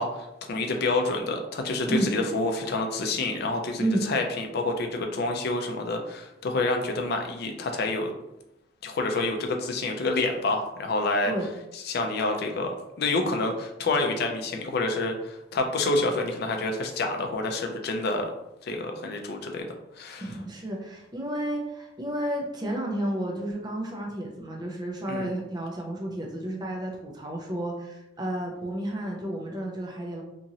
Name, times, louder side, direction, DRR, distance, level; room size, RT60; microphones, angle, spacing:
voice 1, 0.0-8.1 8.8-11.3 11.8-18.3 18.6-19.7 20.0-20.3 25.1-25.3, left 2 dB, 55° left, 3 dB, 0.4 m, -28 dB
voice 2, 20.2-30.2, right 1 dB, 20° right, 0 dB, 0.4 m, -31 dB
2.9 x 2.5 x 2.7 m, 0.89 s
head